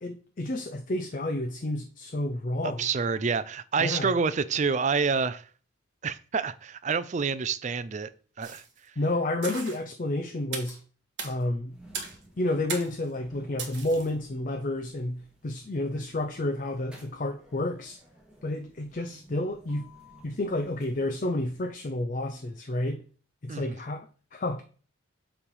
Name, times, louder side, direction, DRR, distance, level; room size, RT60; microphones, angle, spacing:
voice 1, 0.0-2.9 3.8-4.1 9.0-10.8 11.2-11.7 12.4-18.0 18.4-19.9 20.2-23.0 23.4-24.6, left 1 dB, 40° left, 0.5 m, -30 dB
voice 2, 2.6-5.4 6.0-8.1 8.4-8.6 23.5-23.7, right 5 dB, 35° right, 0.4 m, -28 dB
sound 1, 8.4-8.8 9.4-9.8 10.5-10.8 11.2-11.3 11.9-12.2 12.7-13.0 13.6-14.1, right 5 dB, 55° right, 1.4 m, -37 dB
sound 2, 11.7-21.8, equal, 5° right, 1.5 m, -55 dB
7.2 x 3.3 x 5.3 m
head